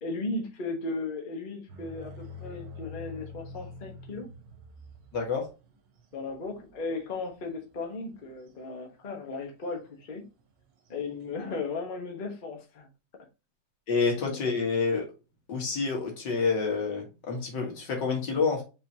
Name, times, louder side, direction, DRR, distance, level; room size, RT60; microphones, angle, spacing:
voice 1, 0.0-4.3 6.1-10.2 10.9-12.9 14.1-14.2, left 3 dB, 35° left, 2 dB, 1.0 m, -36 dB
sound 1, 1.7-8.5 9.1-9.6 9.9-10.0 10.4-11.7, left 3 dB, 80° right, 1.7 m, -46 dB
voice 2, 5.1-5.5 13.9-15.0 15.5-18.6, left 4 dB, 75° left, 1 dB, 2.2 m, -28 dB
5.0 x 3.9 x 2.7 m, 0.29 s
omnidirectional pair, 1.9 m